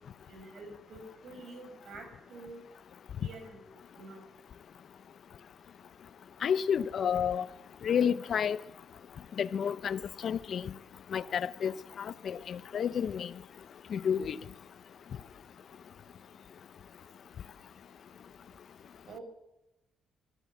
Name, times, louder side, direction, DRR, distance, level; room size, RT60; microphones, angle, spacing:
voice 1, 0.3-2.6 3.2-3.6 3.9-4.2 19.1-19.2, right 2 dB, 60° right, 7.4 m, -47 dB
voice 2, 6.4-7.5 7.8-8.6 9.4-10.7 11.1-13.3 13.9-14.4, left 8 dB, 60° left, 0.9 m, -30 dB
23.0 x 15.5 x 7.2 m
cardioid pair, 90°, 0 cm